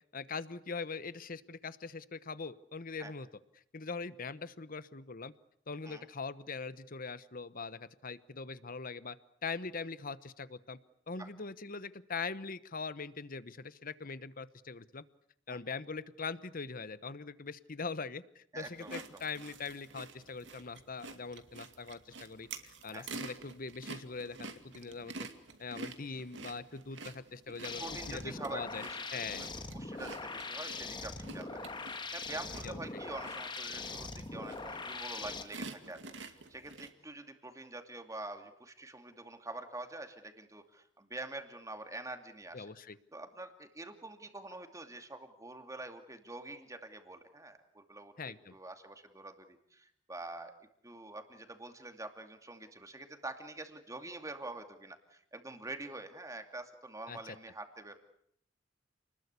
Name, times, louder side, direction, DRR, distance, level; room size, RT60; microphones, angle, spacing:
voice 1, 0.1-3.3 3.7-5.3 5.7-9.2 9.4-10.8 11.1-15.0 15.5-25.3 25.6-27.8 28.1-28.8 29.1-29.4 32.6-32.8 42.5-43.0 48.2-48.5 57.1-57.2, left 4 dB, 50° left, 15 dB, 1.1 m, -42 dB
voice 2, 18.5-19.1 22.9-23.0 27.8-29.5 29.7-31.6 31.9-36.0 36.3-42.7 43.1-50.5 50.8-58.0, right 2 dB, 20° right, 6 dB, 2.6 m, -46 dB
sound 1, 18.6-36.9, right 3 dB, 70° right, 2.4 m, -49 dB
sound 2, 27.6-35.4, left 3 dB, 25° left, 1.8 m, -42 dB
29.0 x 20.5 x 8.4 m, 0.70 s
head